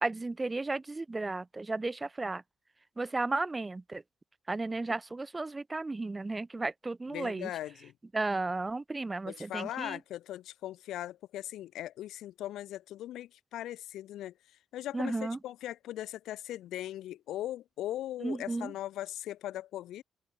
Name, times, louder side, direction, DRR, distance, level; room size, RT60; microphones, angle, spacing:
voice 1, 0.0-2.4 3.0-4.0 4.5-7.5 8.1-10.0 14.9-15.4 18.2-18.7, right 3 dB, 20° right, 0.4 m, -34 dB
voice 2, 7.1-7.9 9.2-14.3 14.7-20.0, left 13 dB, 80° left, 1.0 m, -39 dB
cardioid pair, 90°, 0 cm